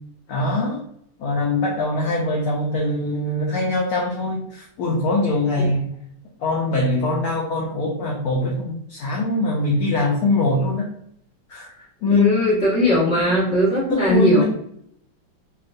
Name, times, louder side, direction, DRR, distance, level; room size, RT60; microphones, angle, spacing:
voice 1, 0.3-0.8 1.2-5.9 6.4-10.9 11.5-12.4 13.2-13.3 13.9-14.4, left 2 dB, 75° left, -3 dB, 0.8 m, -22 dB
voice 2, 12.1-14.4, equal, 5° right, -9 dB, 0.9 m, -19 dB
3.5 x 2.4 x 2.4 m, 0.70 s
omnidirectional pair, 2.2 m